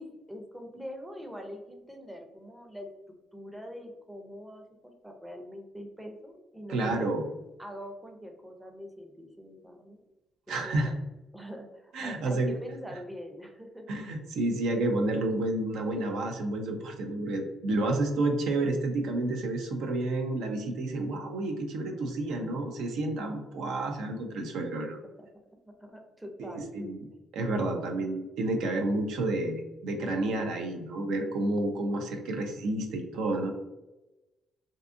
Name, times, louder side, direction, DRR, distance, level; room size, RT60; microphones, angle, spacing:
voice 1, 0.0-2.9 3.3-4.6 5.0-7.1 7.6-10.0 10.5-10.9 11.3-13.8 25.2-25.3 25.8-26.9 27.5-27.9, equal, 10° right, 3 dB, 0.5 m, -43 dB
voice 2, 6.7-7.3 10.5-10.9 11.9-12.5 13.9-25.0 26.4-27.0 27.3-33.5, right 2 dB, 85° right, 3 dB, 0.4 m, -30 dB
2.6 x 2.3 x 2.5 m, 1.0 s
cardioid pair, 90°, 0 cm